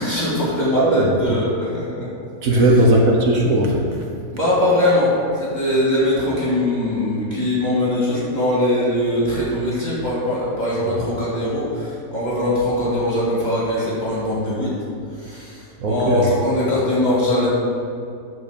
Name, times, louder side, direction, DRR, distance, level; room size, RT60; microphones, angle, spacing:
voice 1, 0.0-2.1 2.5-2.6 4.3-14.7 15.1-17.5, left 1 dB, 25° left, -8 dB, 2.6 m, -21 dB
voice 2, 0.7-1.4 2.4-4.0 15.8-16.3, right 1 dB, 60° right, 0 dB, 1.4 m, -17 dB
12.5 x 4.2 x 5.2 m, 2.4 s
omnidirectional pair, 1.6 m